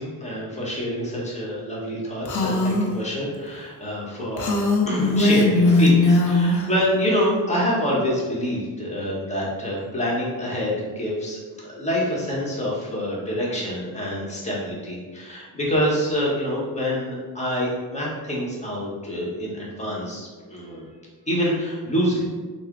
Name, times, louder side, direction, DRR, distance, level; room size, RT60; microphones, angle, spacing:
voice 1, 0.0-20.9 21.3-22.3, equal, 20° left, -5 dB, 1.0 m, -26 dB
Female speech woman speaking, 2.3-2.9 4.4-6.6, left 2 dB, 50° left, 0.6 m, -19 dB
3.2 x 2.1 x 3.7 m, 1.4 s
cardioid pair, 110°, 38 cm